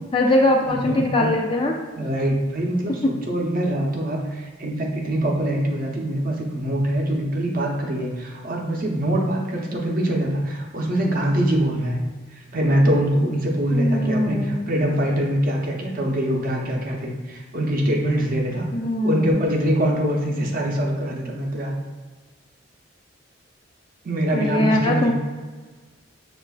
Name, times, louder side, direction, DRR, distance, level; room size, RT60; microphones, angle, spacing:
voice 1, 0.1-1.7 13.7-14.6 18.7-19.4 24.3-25.1, left 1 dB, 25° left, 1 dB, 0.3 m, -21 dB
voice 2, 0.7-1.3 2.0-12.0 12.3-18.7 19.0-21.7 24.0-25.1, right 1 dB, 45° right, 0 dB, 0.6 m, -23 dB
6.4 x 2.4 x 2.3 m, 1.3 s
head